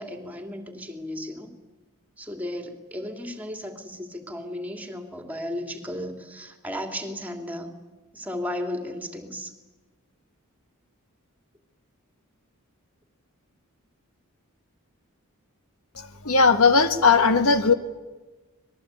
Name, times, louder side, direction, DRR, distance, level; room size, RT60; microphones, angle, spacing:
voice 1, 0.0-1.5 2.2-7.7 8.1-9.5, left 1 dB, 5° right, 5 dB, 2.9 m, -34 dB
voice 2, 16.0-17.7, left 4 dB, 65° left, 9 dB, 1.6 m, -18 dB
26.0 x 20.5 x 9.0 m, 1.2 s
head